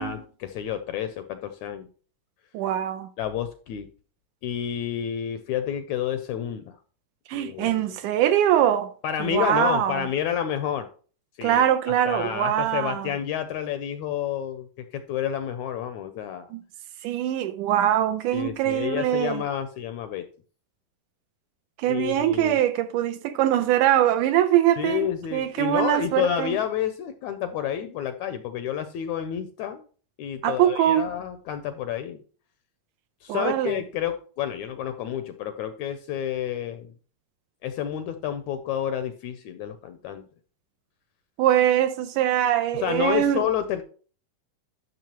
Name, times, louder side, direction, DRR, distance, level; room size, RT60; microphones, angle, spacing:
voice 1, 0.0-1.9 3.2-3.9 4.4-6.8 7.3-8.0 9.0-10.9 11.4-11.7 12.0-16.5 18.3-20.2 21.8-22.6 24.8-29.9 30.2-32.2 33.2-36.9 37.6-40.2 42.7-43.8, left 9 dB, 80° left, 1.7 m, -29 dB
voice 2, 2.5-3.1 7.3-8.9 9.2-10.1 11.4-13.1 16.5-16.6 17.0-19.4 21.8-26.6 30.4-31.1 33.3-33.8 41.4-43.4, right 11 dB, 80° right, 2.0 m, -23 dB
12.0 x 6.4 x 3.0 m
omnidirectional pair, 3.9 m